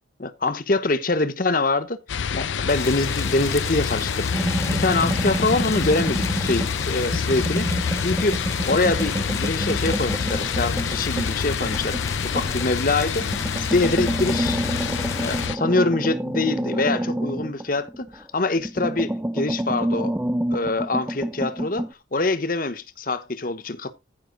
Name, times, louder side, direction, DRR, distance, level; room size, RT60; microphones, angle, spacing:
voice 1, 0.2-2.0 2.3-13.3 13.6-14.6 15.2-20.2 20.5-23.9, left 2 dB, 50° left, 1.0 m, -25 dB
sound 1, 2.1-15.6, left 6 dB, 90° left, 0.6 m, -27 dB
sound 2, 2.7-15.5, left 3 dB, 15° left, 0.9 m, -35 dB
sound 3, 4.3-6.8 7.1-12.7 13.2-18.2 18.6-21.9, right 1 dB, 10° right, 0.5 m, -28 dB
14.5 x 5.5 x 4.0 m
head